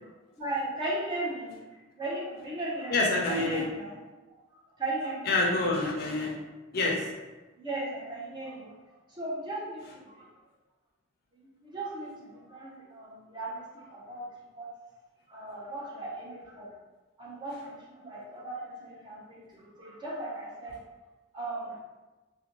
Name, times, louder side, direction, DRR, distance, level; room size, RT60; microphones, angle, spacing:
voice 1, 0.4-1.6 1.9-4.0 4.8-5.3 7.6-8.7 9.1-10.3 11.3-14.2 14.6-14.7 15.3-16.7 17.2-20.8 21.3-21.8, right 2 dB, 25° right, -6 dB, 0.6 m, -37 dB
voice 2, 2.9-3.6 5.3-6.4 6.7-7.1, left 2 dB, 50° left, -1 dB, 0.4 m, -27 dB
2.5 x 2.1 x 2.9 m, 1.2 s
head